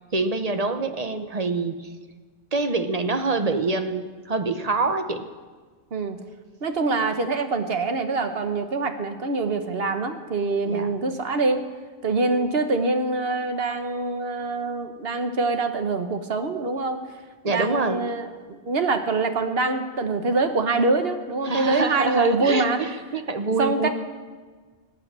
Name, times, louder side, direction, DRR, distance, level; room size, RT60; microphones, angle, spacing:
voice 1, 0.1-1.9 2.5-5.2 10.7-10.9 17.4-18.0 21.4-23.9, right 3 dB, 40° right, 8 dB, 0.9 m, -25 dB
voice 2, 6.6-11.6 12.0-17.0 17.4-22.8 23.6-23.9, right 3 dB, 65° right, 7 dB, 1.3 m, -24 dB
18.0 x 9.0 x 7.4 m, 1.4 s
omnidirectional pair, 1.1 m